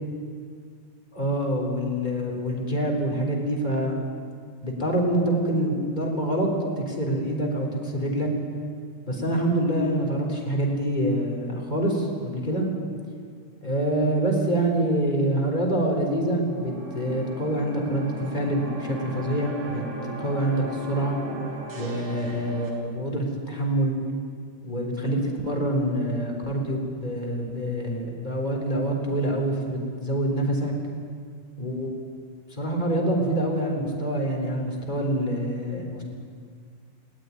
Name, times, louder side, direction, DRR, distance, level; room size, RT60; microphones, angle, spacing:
voice 1, 1.1-3.9 4.6-6.5 6.8-8.3 9.1-12.6 13.6-21.2 21.7-24.0 24.6-30.7 31.6-31.9 32.6-36.0, right 1 dB, 15° left, 0 dB, 3.7 m, -26 dB
sound 1, 16.3-22.7, right 1 dB, 50° right, 3.7 m, -37 dB
20.0 x 18.0 x 9.8 m, 2.1 s
omnidirectional pair, 3.4 m